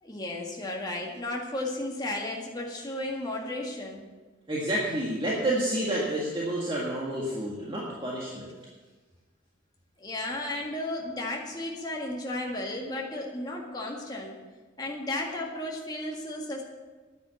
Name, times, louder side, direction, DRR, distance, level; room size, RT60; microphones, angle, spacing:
voice 1, 0.0-4.1 10.0-14.4 14.8-16.6, left 1 dB, 20° left, -1 dB, 1.8 m, -34 dB
voice 2, 4.5-8.5, right 1 dB, 25° right, -5 dB, 1.8 m, -29 dB
10.5 x 9.4 x 7.0 m, 1.3 s
head